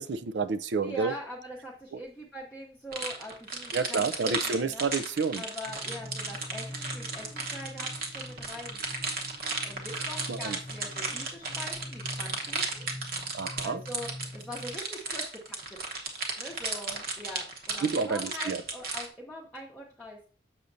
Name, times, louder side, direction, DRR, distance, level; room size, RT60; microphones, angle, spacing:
voice 1, 0.0-1.1 1.9-2.0 3.7-5.4 10.3-10.6 13.3-13.8 17.8-18.6, right 4 dB, 70° right, 13 dB, 0.5 m, -29 dB
voice 2, 0.8-4.8 5.4-8.8 9.6-12.9 13.6-15.6 16.4-20.3, equal, 5° left, -6 dB, 0.8 m, -42 dB
sound 1, 2.9-19.1, right 4 dB, 50° right, 1.1 m, -34 dB
sound 2, 5.7-14.8, left 1 dB, 50° left, 0.7 m, -44 dB
7.0 x 6.5 x 2.6 m, 0.40 s
head